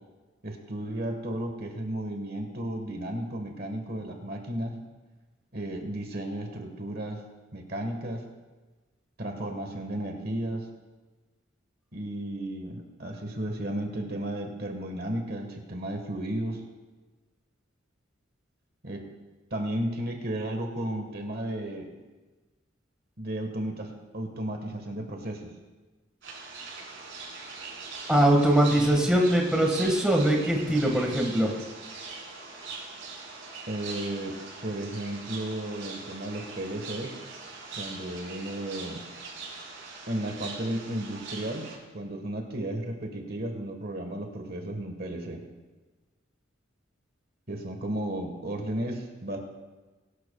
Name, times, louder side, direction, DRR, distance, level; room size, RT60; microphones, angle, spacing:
voice 1, 0.4-4.8 5.5-7.2 7.5-8.2 9.2-10.7 11.9-16.6 18.8-19.0 19.5-21.9 23.2-25.5 33.7-34.4 34.6-37.1 37.7-39.0 40.1-45.4 47.5-49.4, right 1 dB, 50° right, 4 dB, 1.4 m, -34 dB
sound 1, 26.2-41.8, right 4 dB, 70° right, 4.2 m, -41 dB
voice 2, 28.1-31.5, right 1 dB, 5° right, 0 dB, 1.6 m, -22 dB
21.5 x 12.0 x 2.3 m, 1.2 s
head